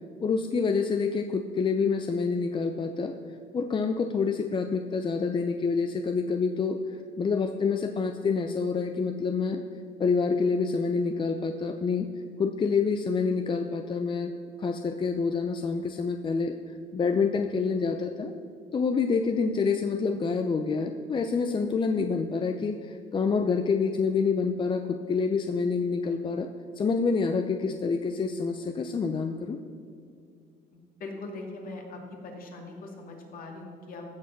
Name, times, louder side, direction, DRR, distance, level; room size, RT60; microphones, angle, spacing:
voice 1, 0.2-3.1 3.5-9.6 10.0-12.1 12.4-14.3 14.6-16.5 16.9-18.3 18.7-26.5 26.8-29.6, left 5 dB, 30° left, 6 dB, 0.6 m, -27 dB
voice 2, 30.7-34.0, left 2 dB, 55° left, 1 dB, 2.5 m, -41 dB
15.0 x 6.2 x 6.0 m, 2.4 s
cardioid pair, 110°, 17 cm